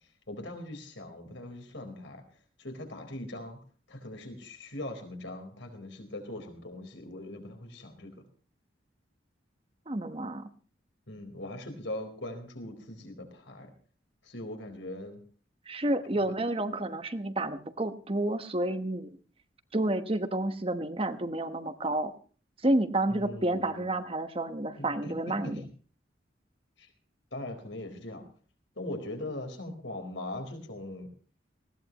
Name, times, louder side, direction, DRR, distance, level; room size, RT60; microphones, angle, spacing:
voice 1, 0.3-2.2 2.6-3.6 3.9-8.2 11.1-13.7 14.2-15.2 16.1-16.3 23.1-23.9 24.8-25.7 26.8-26.9 27.3-28.3 28.8-31.1, left 1 dB, 75° left, 5 dB, 4.2 m, -40 dB
voice 2, 9.9-10.5 15.7-19.2 19.7-22.1 22.6-25.6, right 1 dB, 30° right, 9 dB, 1.1 m, -30 dB
19.5 x 16.5 x 3.0 m, 0.41 s
head